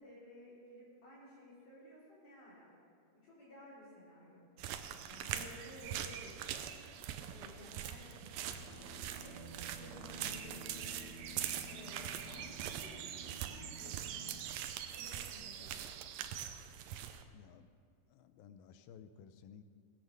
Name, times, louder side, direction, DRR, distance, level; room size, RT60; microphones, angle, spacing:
voice 1, 0.0-2.7 3.1-4.4 5.1-6.6 7.2-9.4 9.7-11.1 11.6-14.4 14.9-15.7, left 1 dB, 60° left, -9 dB, 5.1 m, -55 dB
sound 1, 4.6-17.2, right 10 dB, 85° right, 2.4 m, -43 dB
sound 2, 8.4-14.5, right 2 dB, 10° right, 1.3 m, -53 dB
voice 2, 17.3-17.7 18.1-19.6, left 8 dB, 85° left, 10 dB, 2.5 m, -56 dB
18.0 x 9.2 x 6.5 m, 2.2 s
omnidirectional pair, 4.1 m